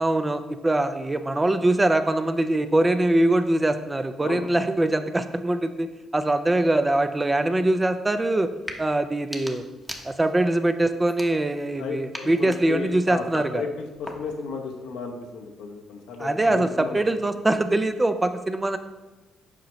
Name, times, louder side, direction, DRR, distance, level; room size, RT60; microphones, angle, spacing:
voice 1, 0.0-5.9 6.1-8.5 8.8-9.6 10.0-13.6 16.2-18.8, right 1 dB, 15° right, 9 dB, 0.5 m, -23 dB
sound 1, 8.5-8.8 9.2-10.5 11.0-11.7 12.1-14.5, left 1 dB, 5° left, 0.9 m, -40 dB
voice 2, 11.8-17.1, left 5 dB, 90° left, 2 dB, 0.9 m, -34 dB
7.5 x 5.1 x 3.1 m, 1.2 s
cardioid pair, 90°, 0 cm